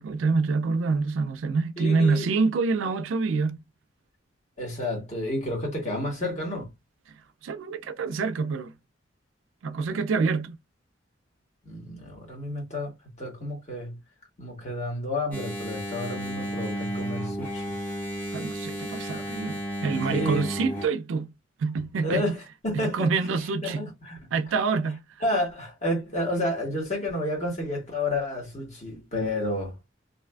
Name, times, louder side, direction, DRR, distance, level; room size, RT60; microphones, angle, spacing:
voice 1, 0.0-3.6 7.4-8.7 9.6-10.6 18.3-21.3 21.6-22.3 22.9-23.9 24.3-25.0, right 4 dB, 90° right, 0.4 m, -26 dB
voice 2, 1.8-2.3 4.6-6.7 11.6-14.0 14.4-17.8 19.1-19.2 20.1-20.5 22.0-23.2 23.6-24.3 25.2-29.8, left 1 dB, 35° left, 1.3 m, -30 dB
Engine, 15.3-20.9, equal, 10° left, 0.8 m, -33 dB
2.5 x 2.5 x 2.2 m
head